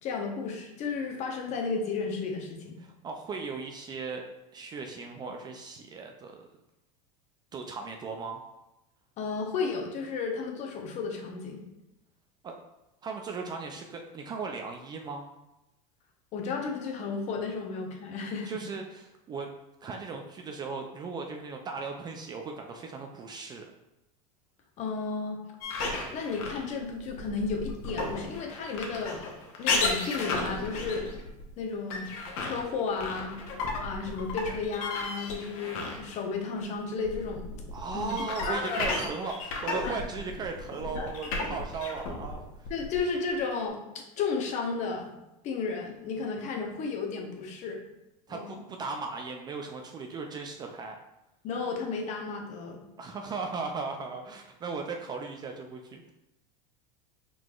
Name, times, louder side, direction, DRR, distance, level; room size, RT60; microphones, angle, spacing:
voice 1, 0.0-2.8 9.2-11.6 16.3-18.6 24.8-25.4 26.1-29.3 29.6-31.1 31.6-33.4 33.8-37.5 37.9-38.1 38.4-38.9 39.8-40.0 40.9-41.1 42.7-45.1 45.4-47.8 48.3-48.5 51.4-52.8, left 4 dB, 40° left, 2 dB, 0.8 m, -33 dB
voice 2, 2.8-4.2 4.5-6.4 7.5-8.5 12.4-12.5 13.0-15.3 18.5-19.5 19.8-23.7 37.7-42.7 48.3-51.0 53.0-56.1, right 4 dB, 25° right, 3 dB, 0.3 m, -37 dB
sound 1, 25.6-36.3 36.6-43.4, left 3 dB, 70° left, 1.0 m, -34 dB
4.7 x 3.8 x 2.4 m, 0.93 s
supercardioid pair, 125°, 18 cm